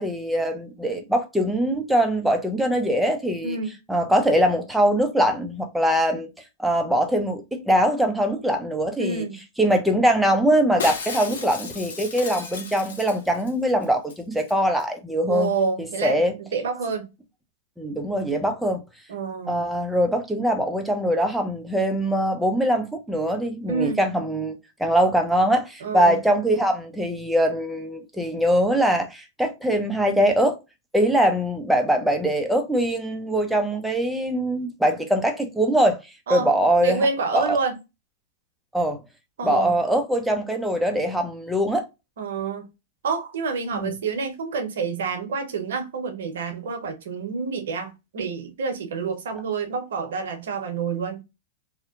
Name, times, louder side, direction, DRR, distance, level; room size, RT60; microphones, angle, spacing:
voice 1, 0.0-3.6 3.9-6.3 6.6-9.3 9.6-15.5 15.8-16.3 17.8-18.8 19.5-30.6 30.9-36.0 36.3-37.1 37.3-37.6 38.7-39.0 39.4-41.8 43.7-43.9, right 1 dB, 5° right, 0.6 m, -22 dB
voice 2, 3.4-3.7 9.0-9.3 15.3-16.2 16.5-17.0 19.1-19.7 23.7-24.0 25.8-26.2 36.3-36.5 36.8-37.8 39.4-39.7 42.2-42.7 43.0-51.2, right 5 dB, 75° right, 0.8 m, -28 dB
Shatter, 10.8-13.5 13.8-13.9 14.1-14.5 14.8-14.9, left 5 dB, 80° left, 0.7 m, -34 dB
2.8 x 2.1 x 2.4 m
hypercardioid pair, 120°, 0 cm